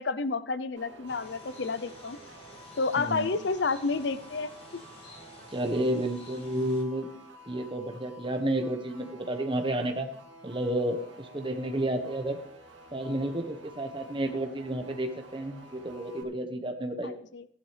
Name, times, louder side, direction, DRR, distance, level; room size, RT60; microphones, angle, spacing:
voice 1, 0.0-2.2 2.8-4.8 17.0-17.5, left 4 dB, 75° left, 14 dB, 0.6 m, -30 dB
sound 1, 0.8-16.2, right 1 dB, 90° right, 2.6 m, -51 dB
sound 2, 1.1-6.8, left 1 dB, 30° left, 2.4 m, -51 dB
voice 2, 3.0-3.4 5.5-7.1 7.5-10.1 10.4-12.4 12.9-17.1, right 1 dB, 25° right, 6 dB, 1.2 m, -31 dB
15.5 x 11.0 x 3.4 m, 0.63 s
head